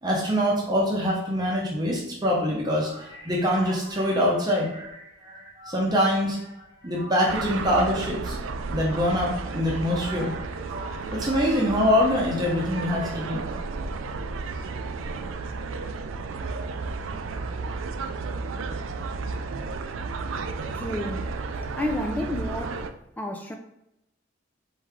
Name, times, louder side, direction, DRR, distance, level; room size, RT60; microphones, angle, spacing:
voice 1, 0.0-6.5 6.8-8.4 8.7-13.5, equal, 20° right, -4 dB, 0.9 m, -25 dB
sound 1, 7.3-22.9, right 4 dB, 80° right, 0.4 m, -33 dB
voice 2, 20.7-21.3 21.8-22.8 23.2-23.6, left 1 dB, 10° left, 3 dB, 0.4 m, -30 dB
4.5 x 3.0 x 3.6 m, 0.84 s
head